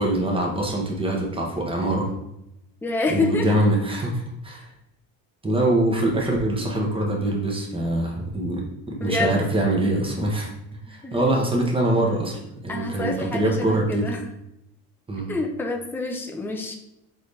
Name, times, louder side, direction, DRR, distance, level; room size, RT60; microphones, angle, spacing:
voice 1, 0.0-2.1 3.1-4.7 5.4-10.5 10.9-14.1 15.1-15.3, right 1 dB, 15° right, -1 dB, 1.2 m, -24 dB
voice 2, 2.8-3.5 9.0-9.4 10.9-11.3 12.7-14.2 15.3-16.8, left 3 dB, 5° left, 1 dB, 0.6 m, -27 dB
4.0 x 3.9 x 3.3 m, 0.84 s
cardioid pair, 105°, 41 cm